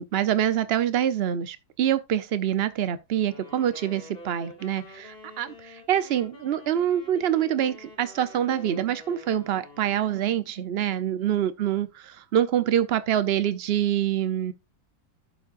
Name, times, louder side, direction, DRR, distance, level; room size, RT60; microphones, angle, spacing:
voice 1, 0.0-14.5, right 10 dB, 55° right, 0.7 m, -25 dB
Wind instrument woodwind instrument, 3.2-10.5, left 1 dB, 30° left, 2.6 m, -47 dB
11.5 x 7.5 x 2.5 m
omnidirectional pair, 1.9 m